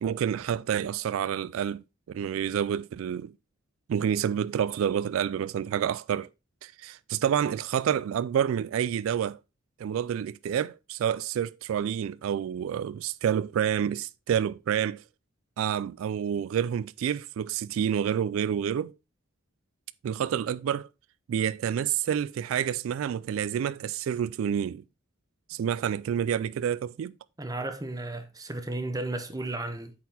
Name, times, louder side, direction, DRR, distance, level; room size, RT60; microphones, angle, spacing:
voice 1, 0.0-3.3 3.9-6.3 6.6-9.4 9.8-15.0 15.6-18.9 20.0-20.9 21.3-24.8 25.5-27.2, right 9 dB, 80° right, 0.3 m, -28 dB
voice 2, 27.4-29.9, right 2 dB, 20° right, 0.8 m, -34 dB
8.4 x 4.2 x 4.0 m
head